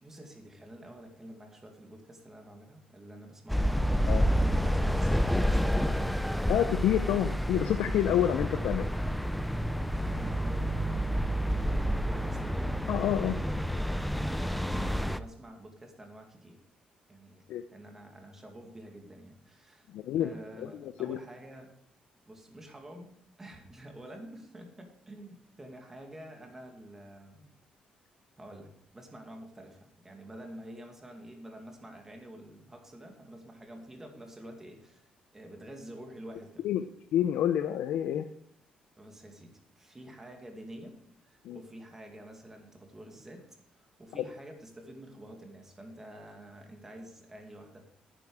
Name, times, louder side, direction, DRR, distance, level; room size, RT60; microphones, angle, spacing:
voice 1, 0.0-3.7 4.1-6.6 9.9-12.8 14.3-16.6 17.1-17.4 17.7-21.7 22.3-27.5 28.4-36.6 39.0-40.9 41.2-43.5 43.7-47.8, right 1 dB, 15° right, 3 dB, 2.3 m, -48 dB
sound 1, 3.5-15.2, equal, ahead, 0.5 m, -29 dB
voice 2, 6.5-8.9 12.9-13.4 17.5-17.6 19.9-20.3 20.6-21.2 36.6-36.8 37.1-38.3 41.4-41.6 44.2-44.3, left 11 dB, 85° left, 9 dB, 0.6 m, -28 dB
11.0 x 9.2 x 4.9 m, 0.66 s
cardioid pair, 140°, 3 cm